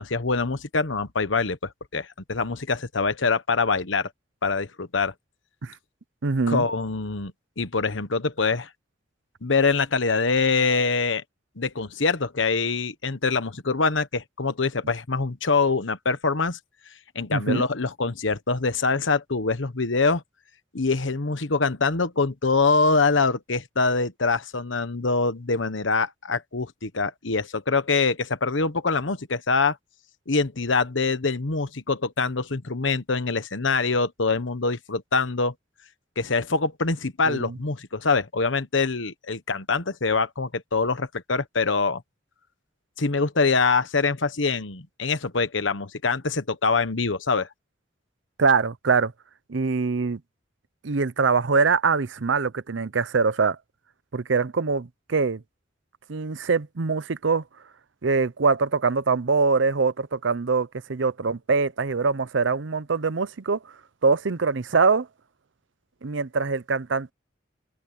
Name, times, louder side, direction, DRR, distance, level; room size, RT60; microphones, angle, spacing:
voice 1, 0.0-4.1 4.4-5.1 6.5-8.7 9.4-11.2 11.6-16.6 17.1-20.2 20.7-29.8 30.3-35.5 36.2-42.0 43.0-47.5, left 4 dB, 80° left, 1.2 m, -24 dB
voice 2, 6.2-6.6 17.3-17.6 37.3-37.5 48.4-49.1 49.5-50.2 50.8-53.6 54.1-55.4 56.1-57.4 58.0-63.6 64.0-65.1 66.0-67.1, right 4 dB, 75° right, 0.7 m, -23 dB
head